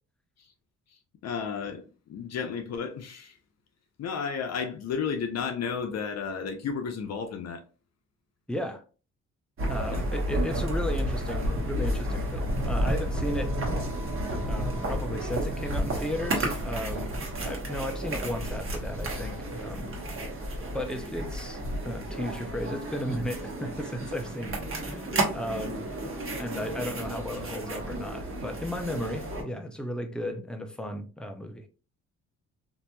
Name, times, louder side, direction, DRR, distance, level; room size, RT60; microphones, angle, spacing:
voice 1, 1.2-3.3 4.0-7.6 9.9-10.2, left 6 dB, 60° left, 0.6 m, -33 dB
voice 2, 8.5-8.8 9.7-13.5 14.5-17.1 17.4-19.9 20.7-24.6 24.9-25.8 26.4-31.6, left 1 dB, 5° left, 0.5 m, -35 dB
sound 1, 9.6-29.4, right 1 dB, 45° right, 1.1 m, -31 dB
2.9 x 2.6 x 2.2 m
cardioid pair, 90°, 30 cm